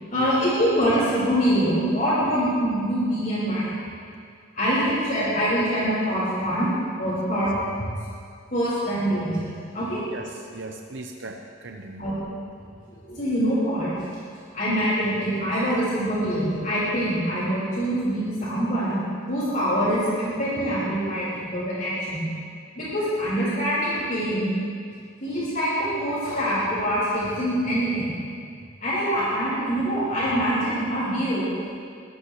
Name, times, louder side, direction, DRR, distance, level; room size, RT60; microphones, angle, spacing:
voice 1, 0.1-3.7 4.5-6.7 7.0-7.5 8.5-10.0 12.0-12.1 13.1-13.9 14.5-19.0 19.3-22.3 22.7-24.5 25.2-28.1 28.8-31.7, equal, 40° left, -9 dB, 4.6 m, -24 dB
voice 2, 10.1-12.1, right 3 dB, 60° right, 3 dB, 0.8 m, -38 dB
24.0 x 17.5 x 3.2 m, 2.2 s
head